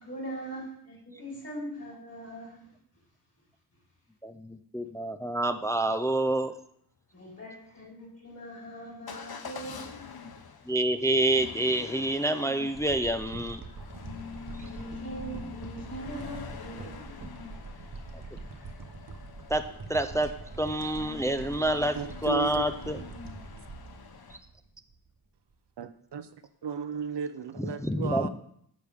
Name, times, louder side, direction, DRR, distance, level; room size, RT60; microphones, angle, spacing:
voice 1, 0.0-2.7 7.1-9.9 14.6-18.7, right 1 dB, 35° left, -4 dB, 3.7 m, -42 dB
voice 2, 4.2-6.5 10.7-13.6 19.5-20.3 20.6-22.0 22.2-23.0 27.8-28.3, right 1 dB, 5° left, 7 dB, 0.4 m, -27 dB
Motor vehicle (road) / Engine starting / Accelerating revving vroom, 9.1-24.4, left 6 dB, 60° left, 0.8 m, -45 dB
sound 1, 12.8-25.1 25.5-25.6, right 3 dB, 55° right, 0.9 m, -44 dB
voice 3, 21.9-22.7 25.8-26.3 26.6-28.3, right 7 dB, 75° right, 11 dB, 0.7 m, -35 dB
10.5 x 6.4 x 3.5 m, 0.69 s
wide cardioid pair, 95°, 42 cm